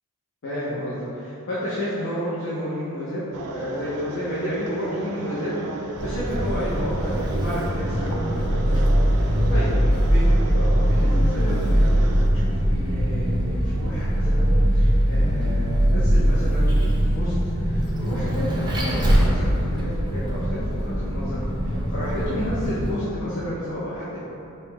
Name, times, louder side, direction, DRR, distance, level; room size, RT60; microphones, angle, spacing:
voice 1, 0.4-5.5 5.8-24.2, equal, 60° left, -10 dB, 0.7 m, -31 dB
sound 1, 3.3-12.3, right 2 dB, 80° right, 0.4 m, -35 dB
Vehicle, 6.0-22.9, equal, 20° right, 0.4 m, -21 dB
5.3 x 2.1 x 3.0 m, 2.8 s
head